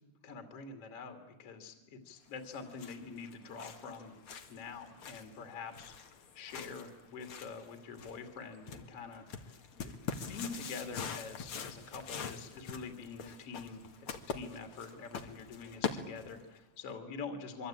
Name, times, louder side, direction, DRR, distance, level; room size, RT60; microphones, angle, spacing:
voice 1, 0.0-4.2 4.5-5.9 6.3-13.8 14.1-17.7, left 5 dB, 40° left, 6 dB, 2.9 m, -46 dB
sound 1, 2.4-16.6, left 6 dB, 55° left, 1.5 m, -44 dB
26.0 x 24.0 x 8.9 m, 1.0 s
omnidirectional pair, 5.1 m